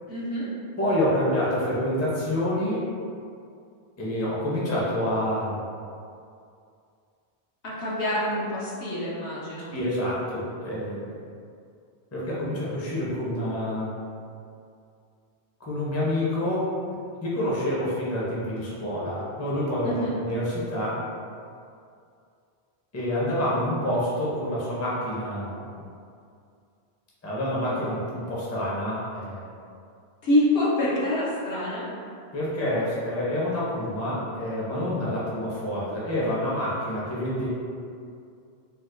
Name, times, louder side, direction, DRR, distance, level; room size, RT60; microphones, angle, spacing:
voice 1, 0.1-0.5 7.6-9.7 19.8-20.2 30.2-31.9, left 1 dB, 65° left, -6 dB, 0.9 m, -26 dB
voice 2, 0.8-2.9 4.0-5.6 9.7-11.2 12.1-14.0 15.6-16.7 17.2-21.0 22.9-25.8 27.2-29.5 32.3-37.5, left 1 dB, 20° left, -7 dB, 0.5 m, -27 dB
4.4 x 2.2 x 2.5 m, 2.4 s
omnidirectional pair, 1.1 m